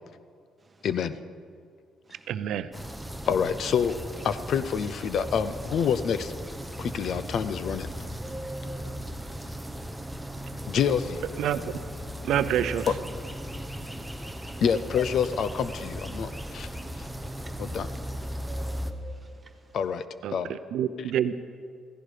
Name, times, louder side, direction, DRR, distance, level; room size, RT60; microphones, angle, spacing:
voice 1, 0.8-1.2 3.3-4.0 4.2-6.3 6.8-7.9 10.7-11.2 12.9-13.0 14.6-16.7 17.0-17.1 17.6-17.9 19.7-20.0 20.3-20.6 21.0-21.1, left 7 dB, 50° left, 0.6 m, -27 dB
voice 2, 2.3-2.7 11.4-11.6 12.2-12.9 20.2-21.3, right 10 dB, 75° right, 0.6 m, -27 dB
sound 1, 2.7-18.9, equal, 5° right, 0.7 m, -37 dB
voice 3, 8.2-8.8 9.2-10.7 12.3-12.5 14.0-14.4 17.4-17.7 18.5-19.8, right 2 dB, 20° right, 1.3 m, -46 dB
15.5 x 15.0 x 5.0 m
cardioid pair, 150°, 0 cm